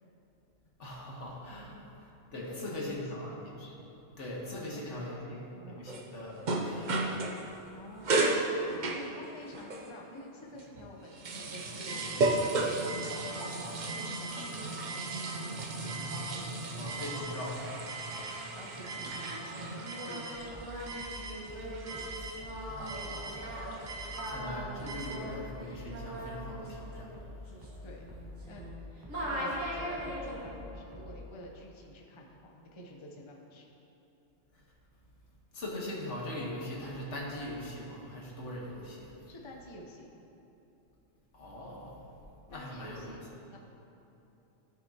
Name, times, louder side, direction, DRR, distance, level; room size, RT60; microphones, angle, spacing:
voice 1, 0.8-3.8 4.2-7.0 16.8-17.6 22.6-23.9 24.3-27.5 34.5-34.6 35.5-39.3 41.3-42.1 42.5-43.2, left 1 dB, 70° left, -3 dB, 1.7 m, -41 dB
voice 2, 2.3-3.0 4.5-5.8 7.7-8.5 8.9-17.4 18.2-20.7 27.8-28.1 28.5-33.7 39.3-40.1 42.5-43.2 43.5-43.6, equal, 25° left, -1 dB, 0.8 m, -49 dB
sound 1, 5.9-7.7 8.0-9.9 10.6-25.2, right 2 dB, 45° right, 0.7 m, -35 dB
Singing, 19.8-28.8 29.1-30.5, equal, 90° right, 2.3 m, -40 dB
sound 2, 20.3-31.4, left 2 dB, 20° right, 1.3 m, -47 dB
15.0 x 6.2 x 2.9 m, 3.0 s
omnidirectional pair, 1.3 m